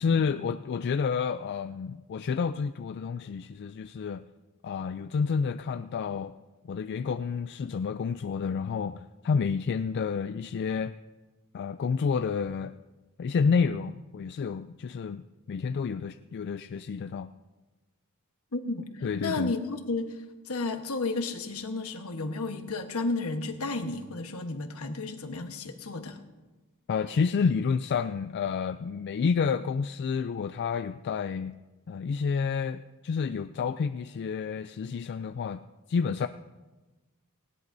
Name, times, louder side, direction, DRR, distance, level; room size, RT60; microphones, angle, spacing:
voice 1, 0.0-4.2 4.6-6.3 6.6-10.9 11.5-12.7 13.2-17.3 19.0-19.5 26.9-31.5 31.9-35.6 35.9-36.3, left 5 dB, 50° left, 10 dB, 0.3 m, -29 dB
voice 2, 18.5-26.2, left 3 dB, 75° left, 6 dB, 1.2 m, -33 dB
19.5 x 16.5 x 2.7 m, 1.2 s
head